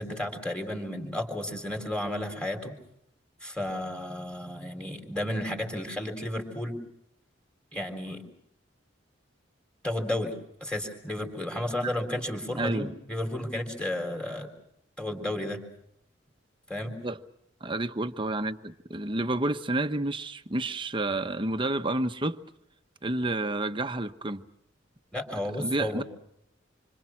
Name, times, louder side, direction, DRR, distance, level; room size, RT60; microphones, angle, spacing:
voice 1, 0.0-2.7 3.4-6.8 7.7-8.2 9.8-10.3 10.6-14.5 15.0-15.6 16.7-16.9 25.1-26.0, left 1 dB, 5° left, 3.9 m, -32 dB
voice 2, 12.6-12.9 17.0-17.2 17.6-22.4 23.0-24.4 25.6-26.0, right 2 dB, 25° right, 1.0 m, -30 dB
27.0 x 26.0 x 6.0 m
head